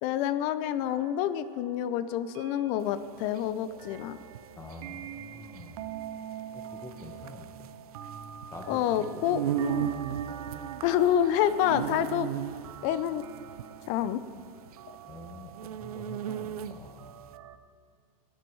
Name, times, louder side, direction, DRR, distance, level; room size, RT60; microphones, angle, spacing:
voice 1, 0.0-4.2 8.7-9.9 10.8-12.3 12.8-13.3 13.9-14.2, left 10 dB, 40° left, 14 dB, 0.5 m, -28 dB
sound 1, 0.9-17.6, right 9 dB, 65° right, 0.9 m, -45 dB
sound 2, 2.9-17.1, right 10 dB, 90° right, 0.5 m, -37 dB
voice 2, 4.6-5.8 6.5-7.7 8.5-9.5 11.9-12.1 15.0-15.5 15.8-17.2, left 2 dB, 15° left, 4 dB, 1.0 m, -46 dB
14.0 x 9.5 x 4.6 m, 2.3 s
supercardioid pair, 140°, 18 cm